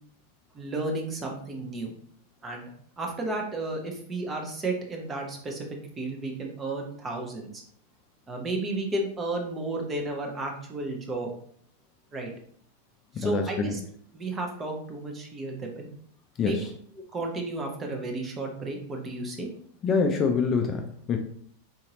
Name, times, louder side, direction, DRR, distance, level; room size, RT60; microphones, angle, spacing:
voice 1, 0.5-1.9 2.4-2.7 3.0-5.7 6.0-7.6 8.3-11.3 12.1-12.3 13.2-13.8 14.1-15.9 16.4-16.6 17.1-19.5, right 2 dB, 20° right, 1 dB, 0.7 m, -32 dB
voice 2, 13.1-13.8 16.4-16.7 19.8-21.2, left 5 dB, 25° left, 4 dB, 0.3 m, -26 dB
3.8 x 2.8 x 2.8 m, 0.63 s
figure-of-eight pair, 90°, 0 cm